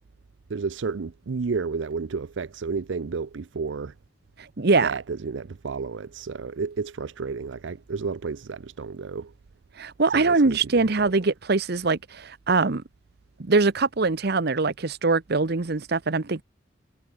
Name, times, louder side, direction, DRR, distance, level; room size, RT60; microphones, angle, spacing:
voice 1, 0.5-3.9 4.8-9.3 10.1-10.6 11.0-11.1, right 4 dB, 75° right, 0.5 m, -31 dB
voice 2, 4.6-4.9 9.8-12.8 13.4-16.4, right 3 dB, 55° right, 0.9 m, -22 dB
head